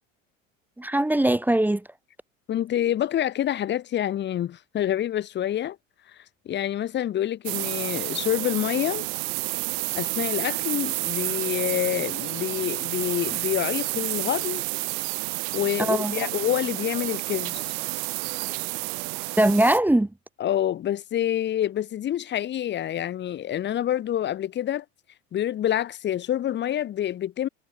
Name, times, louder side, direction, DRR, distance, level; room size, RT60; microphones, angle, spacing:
voice 1, 0.8-1.8 15.8-16.3 19.4-20.1, right 1 dB, 5° right, 0.7 m, -21 dB
voice 2, 2.5-5.8 6.5-9.1 10.0-14.6 15.5-17.6 20.4-24.8 25.3-27.5, left 11 dB, 30° left, 0.8 m, -27 dB
sound 1, 7.4-19.8, right 40 dB or more, 45° right, 0.5 m, -30 dB
figure-of-eight pair, 70°, 39 cm